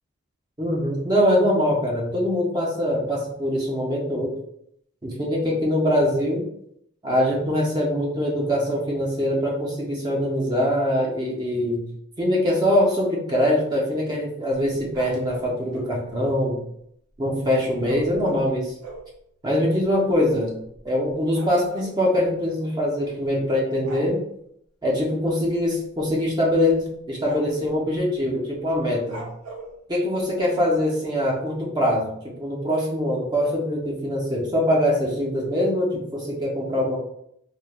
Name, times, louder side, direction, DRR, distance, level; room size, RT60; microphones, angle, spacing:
voice 1, 0.6-4.3 5.0-6.5 7.0-11.9 12.2-16.6 17.2-18.7 19.4-20.5 20.8-24.2 24.8-29.2 29.9-32.1 32.4-37.0, left 1 dB, 20° right, -3 dB, 0.4 m, -23 dB
sound 1, 14.9-15.9 17.8-19.1 19.8-19.9 20.1-20.3 20.6-22.0 23.1-23.4 23.8-24.1 25.5-25.7 26.1-26.2 26.7-26.9 27.2-27.7 29.1-29.7, right 3 dB, 80° right, 0.6 m, -39 dB
3.0 x 2.1 x 2.2 m, 0.74 s
head